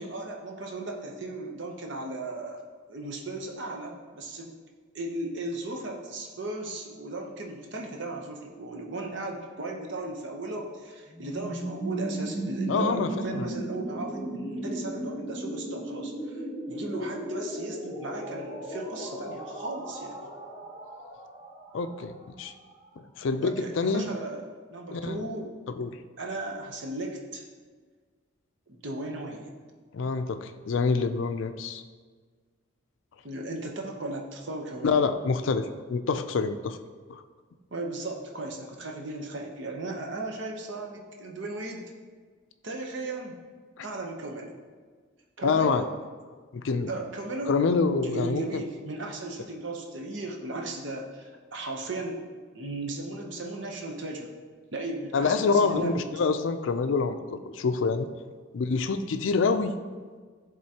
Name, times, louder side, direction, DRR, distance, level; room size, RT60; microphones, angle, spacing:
voice 1, 0.0-4.5 4.9-16.1 16.7-20.2 23.4-24.5 24.7-25.5 26.2-27.4 28.7-29.5 33.2-35.0 37.7-41.9 42.6-43.4 43.8-44.6 45.4-45.9 46.9-47.5 47.9-52.2 52.5-54.3 54.7-56.3, right 2 dB, 60° right, 1 dB, 0.8 m, -36 dB
sound 1, 11.1-22.9, right 1 dB, 10° right, 1.2 m, -36 dB
voice 2, 12.7-13.5 21.7-22.5 23.2-24.1 24.9-25.3 25.7-26.0 29.9-31.8 34.8-36.8 37.1-37.2 43.8-43.9 45.4-45.8 46.5-46.9 47.5-48.6 55.1-58.1 58.5-59.7, left 4 dB, 70° left, 9 dB, 0.4 m, -26 dB
11.0 x 3.7 x 2.8 m, 1.5 s
head